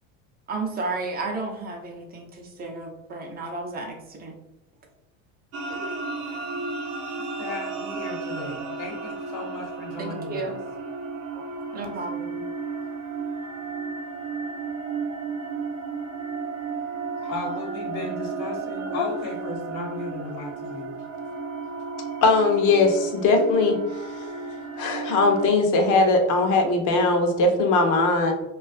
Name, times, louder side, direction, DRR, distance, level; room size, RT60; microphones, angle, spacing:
voice 1, 0.5-4.3 5.7-5.9 10.0-10.5 11.3-11.4 11.7-12.4, right 3 dB, 25° right, 1 dB, 0.5 m, -33 dB
sound 1, 5.5-25.5, right 4 dB, 75° right, 0.6 m, -33 dB
voice 2, 7.4-10.6 17.2-20.9, left 2 dB, 75° left, -1 dB, 1.1 m, -35 dB
voice 3, 22.2-23.8 24.8-28.3, left 3 dB, 45° left, 3 dB, 0.6 m, -20 dB
2.4 x 2.3 x 2.4 m, 0.94 s
hypercardioid pair, 90°, 42 cm